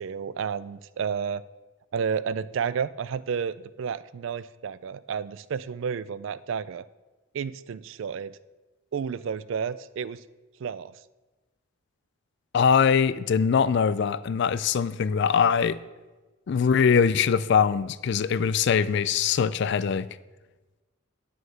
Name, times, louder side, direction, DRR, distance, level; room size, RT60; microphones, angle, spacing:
voice 1, 0.0-1.4 1.9-6.8 7.3-8.4 8.9-10.2 10.6-10.9, right 6 dB, 60° right, 0.3 m, -31 dB
voice 2, 12.5-15.8 16.5-20.1, left 6 dB, 55° left, 0.3 m, -22 dB
9.3 x 6.3 x 5.6 m
head